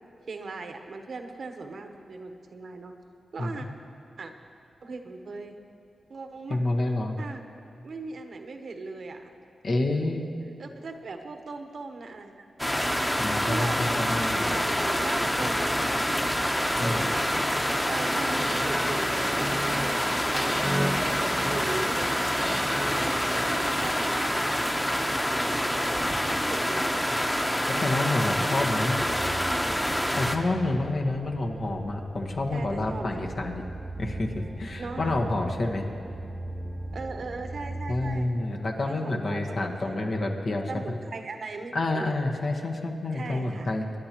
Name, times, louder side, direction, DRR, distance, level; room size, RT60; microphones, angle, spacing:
voice 1, 0.3-2.9 3.3-3.7 4.2-4.3 4.8-5.6 6.1-6.6 7.2-7.4 7.8-9.3 10.6-12.5 13.5-13.8 14.1-16.1 17.8-20.7 21.4-22.2 22.9-24.7 25.0-27.1 29.3-29.9 32.5-33.2 34.8-35.2 36.9-38.3 38.8-40.1 40.7-42.1 43.1-43.7, right 3 dB, 70° right, 5 dB, 1.0 m, -39 dB
voice 2, 6.5-7.2 9.6-10.3 13.2-14.7 16.8-17.1 27.7-29.0 30.2-33.6 34.0-35.9 37.9-40.7 41.7-43.8, left 2 dB, 65° left, 1 dB, 1.4 m, -28 dB
sound 1, 12.6-30.4, equal, 10° left, 1.0 m, -27 dB
sound 2, 16.8-23.6, right 1 dB, 15° right, 1.0 m, -35 dB
sound 3, 29.0-38.3, right 1 dB, 30° right, 0.5 m, -39 dB
25.0 x 10.0 x 3.0 m, 2.4 s
cardioid pair, 55°, 0 cm